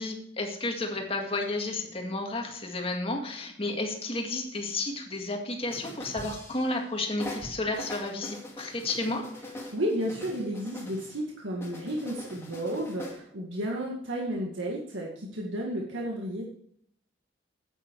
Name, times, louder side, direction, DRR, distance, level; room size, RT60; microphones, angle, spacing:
voice 1, 0.0-9.3, left 2 dB, 30° left, 2 dB, 1.9 m, -32 dB
sound 1, 5.7-6.9 7.2-11.2 11.6-13.2, left 1 dB, 15° left, 2.2 m, -42 dB
voice 2, 9.7-16.5, equal, 80° right, -2 dB, 1.9 m, -32 dB
9.9 x 9.0 x 4.7 m, 0.67 s
head